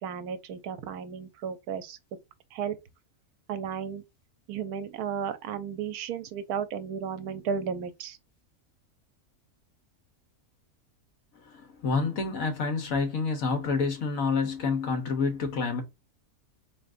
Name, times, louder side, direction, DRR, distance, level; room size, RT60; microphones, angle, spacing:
voice 1, 0.0-2.2 2.5-2.8 3.5-4.0 4.5-8.2, right 7 dB, 85° right, 1.1 m, -34 dB
voice 2, 11.5-15.8, left 4 dB, 65° left, 1.4 m, -28 dB
3.9 x 3.5 x 2.5 m
omnidirectional pair, 1.6 m